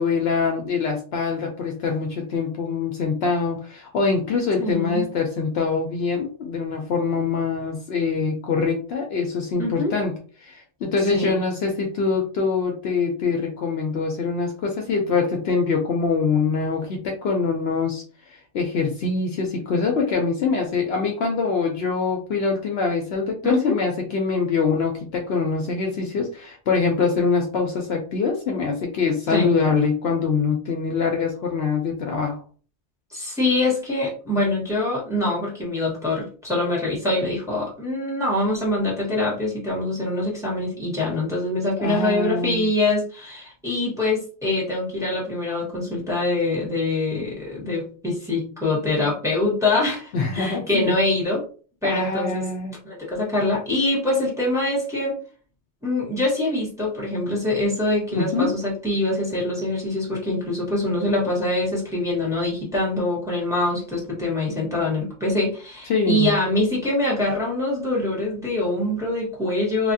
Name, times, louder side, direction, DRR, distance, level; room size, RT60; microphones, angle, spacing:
voice 1, 0.0-10.1 10.4-18.0 18.3-32.4 41.8-42.7 50.1-51.0 51.8-52.7 58.1-58.5 65.9-66.3, left 4 dB, 65° left, 2 dB, 0.8 m, -24 dB
voice 2, 4.6-5.1 9.6-9.9 11.1-11.4 23.4-23.8 29.3-29.5 33.1-51.4 51.8-52.5 52.8-55.1 55.8-69.9, left 2 dB, 5° right, -5 dB, 1.1 m, -24 dB
3.0 x 2.4 x 2.6 m, 0.41 s
omnidirectional pair, 1.2 m